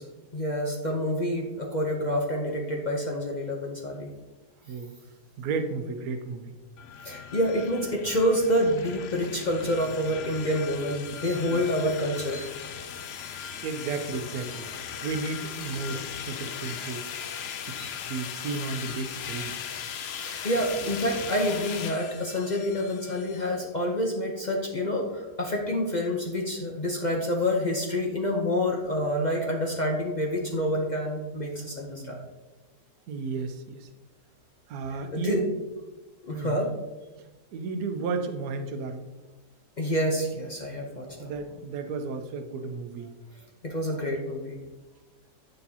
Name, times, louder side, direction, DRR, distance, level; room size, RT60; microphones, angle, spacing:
voice 1, 0.3-4.1 7.0-12.4 17.4-17.5 20.1-32.2 34.9-35.4 36.2-36.7 39.8-41.3 43.6-44.5, equal, 45° left, 0 dB, 0.6 m, -28 dB
voice 2, 5.4-6.5 11.5-11.6 13.6-14.7 15.0-17.1 17.7-17.8 18.1-19.5 31.9-32.3 33.1-33.9 34.7-35.6 36.3-36.6 37.5-39.1 41.2-43.1, right 4 dB, 70° right, 6 dB, 1.1 m, -33 dB
sound 1, 6.8-23.5, left 8 dB, 85° left, 0.5 m, -38 dB
sound 2, 11.2-11.5 12.3-12.6 13.4-13.7 14.5-14.8 15.6-15.8 16.7-16.9 17.8-18.0 18.9-19.1, left 1 dB, 60° left, 1.9 m, -48 dB
7.8 x 6.7 x 2.8 m, 1.2 s
omnidirectional pair, 1.7 m